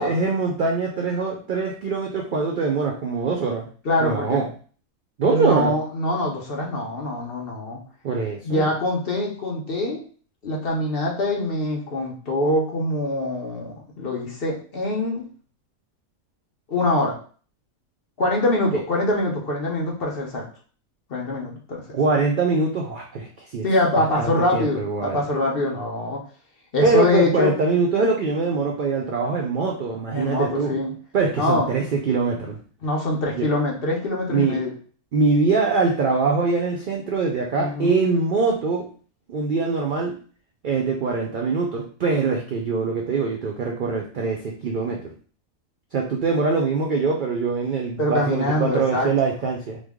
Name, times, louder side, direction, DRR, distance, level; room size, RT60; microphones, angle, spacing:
voice 1, 0.0-3.7 4.0-4.5 5.2-5.8 8.0-8.7 21.9-23.7 24.0-25.2 26.8-30.8 31.1-32.6 33.3-33.5 34.3-34.6 35.1-38.9 39.3-40.2 40.6-45.1 45.9-49.8, right 4 dB, 75° right, 0 dB, 0.4 m, -23 dB
voice 2, 3.8-4.4 5.3-7.8 8.4-10.0 10.4-15.2 16.7-17.2 18.2-20.5 21.1-21.8 23.6-26.2 26.7-27.5 30.1-30.9 31.4-31.7 32.8-34.7 37.6-38.0 48.0-49.1, left 2 dB, 50° left, -1 dB, 0.8 m, -24 dB
3.1 x 2.2 x 3.5 m, 0.42 s
omnidirectional pair, 1.4 m